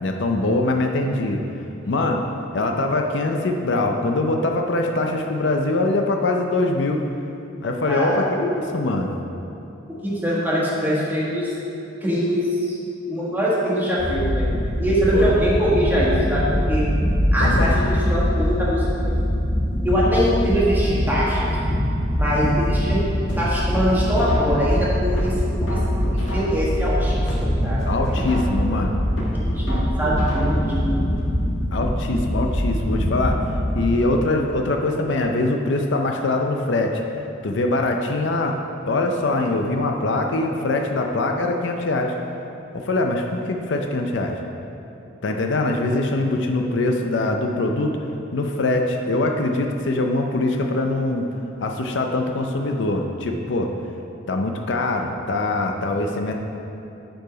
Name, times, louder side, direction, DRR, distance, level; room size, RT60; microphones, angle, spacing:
voice 1, 0.0-1.4 1.9-2.3 2.5-7.0 7.6-9.1 15.1-15.3 17.4-17.8 27.9-28.9 31.7-33.4 33.7-37.0 37.4-38.6 38.9-42.2 42.7-44.4 45.2-48.0 48.3-51.3 51.6-53.7 54.3-56.3, left 2 dB, 65° left, 3 dB, 0.5 m, -23 dB
voice 2, 7.8-8.3 10.0-11.5 12.0-12.7 13.1-14.4 14.8-16.9 17.3-19.1 19.8-21.5 22.2-23.0 23.4-25.8 26.1-28.1 29.3-31.1, equal, 10° right, -7 dB, 1.4 m, -23 dB
sound 1, 14.0-33.8, equal, 30° left, 1.2 m, -23 dB
sound 2, 23.3-24.7 25.2-26.8 27.2-28.7 29.2-30.8 31.2-31.3, equal, 85° left, 1.6 m, -29 dB
7.7 x 4.7 x 5.0 m, 2.8 s
head